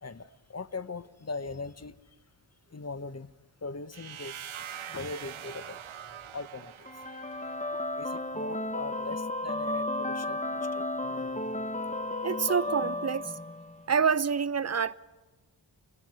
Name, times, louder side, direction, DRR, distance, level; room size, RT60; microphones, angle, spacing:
voice 1, 0.0-2.0 2.7-3.3 3.6-4.5 4.9-5.8 6.3-6.9 7.9-10.9, left 3 dB, 30° left, 1.1 m, -40 dB
sound 1, 3.9-7.8, right 9 dB, 75° right, 1.0 m, -43 dB
sound 2, 6.9-13.8, left 1 dB, 15° left, 1.4 m, -33 dB
voice 2, 12.2-13.3 13.9-14.9, right 6 dB, 30° right, 0.8 m, -27 dB
27.5 x 21.0 x 9.4 m
cardioid pair, 60°, 49 cm